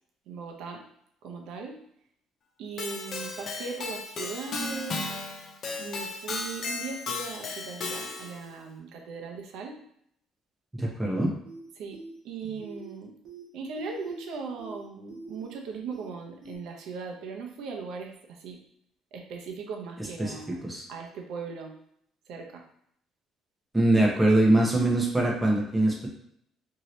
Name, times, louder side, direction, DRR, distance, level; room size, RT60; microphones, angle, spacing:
voice 1, 0.3-0.9 1.2-1.8 2.6-5.1 5.8-9.8 11.8-13.1 13.5-18.6 19.1-20.6 20.9-21.8 22.3-22.6, right 5 dB, 75° right, 2 dB, 0.6 m, -39 dB
Keyboard (musical), 2.8-8.4, left 3 dB, 40° left, 0.4 m, -35 dB
voice 2, 10.7-11.3 20.2-20.3 20.6-20.8 23.7-26.1, right 1 dB, 5° right, -2 dB, 0.7 m, -23 dB
sound 1, 11.4-11.6 11.9-12.1 12.4-12.9 13.3-13.4 13.8-14.3 14.6-14.8 15.1-15.6 15.9-16.1 16.4-16.6, right 3 dB, 50° right, 0.9 m, -44 dB
2.7 x 2.7 x 3.1 m, 0.71 s
cardioid pair, 160°, 0 cm